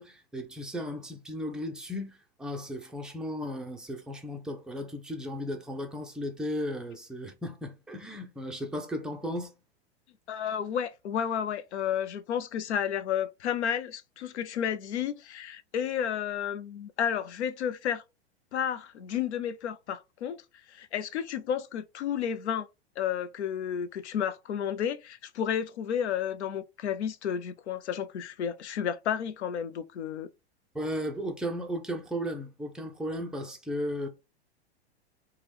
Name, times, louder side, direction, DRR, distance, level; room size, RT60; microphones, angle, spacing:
voice 1, 0.0-9.5 30.7-34.1, equal, ahead, 0.5 m, -35 dB
voice 2, 10.3-18.0 18.5-20.4 20.7-22.7 23.0-30.3, left 8 dB, 80° left, 0.5 m, -32 dB
2.9 x 2.2 x 3.4 m
hypercardioid pair, 105°, 33 cm